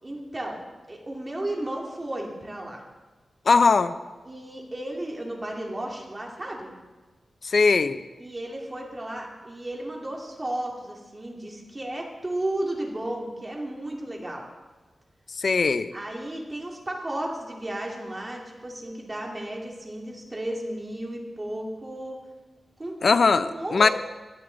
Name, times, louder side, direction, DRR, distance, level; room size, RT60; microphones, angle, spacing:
voice 1, 0.0-2.8 4.2-6.7 8.2-14.4 15.9-22.2 22.8-23.0 23.3-23.9, right 1 dB, 25° right, -1 dB, 2.6 m, -34 dB
voice 2, 3.5-3.9 7.4-8.0 15.4-15.9 23.0-23.9, left 4 dB, 55° left, 11 dB, 0.6 m, -20 dB
17.5 x 11.0 x 4.0 m, 1.3 s
wide cardioid pair, 135°, 0 cm